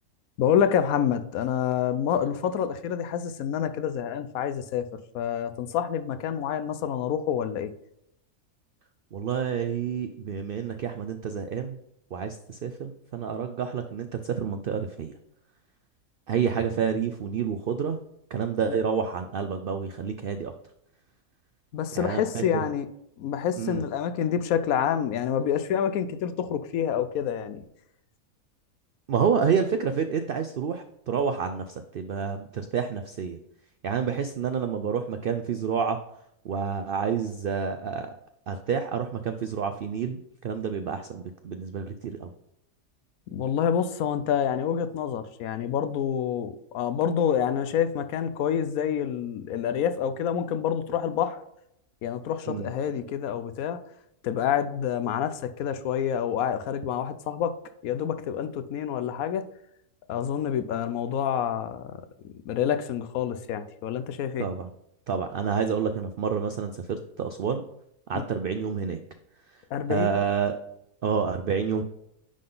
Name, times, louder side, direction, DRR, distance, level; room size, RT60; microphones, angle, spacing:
voice 1, 0.4-7.7 18.6-18.8 21.7-22.9 23.2-27.6 43.3-51.4 52.0-53.8 54.2-57.5 57.8-59.4 60.1-62.0 62.5-64.5 68.1-68.3 69.7-70.2, left 8 dB, 75° left, 10 dB, 1.1 m, -27 dB
voice 2, 9.1-11.8 12.1-15.1 16.3-18.0 18.3-20.5 21.9-22.7 23.6-23.8 29.1-33.4 33.8-36.0 36.4-38.1 38.5-42.3 52.5-52.7 64.4-64.7 65.1-67.6 68.1-69.0 69.9-70.6 71.0-71.8, right 6 dB, 80° right, 8 dB, 0.5 m, -29 dB
10.0 x 3.8 x 3.8 m, 0.78 s
omnidirectional pair, 1.5 m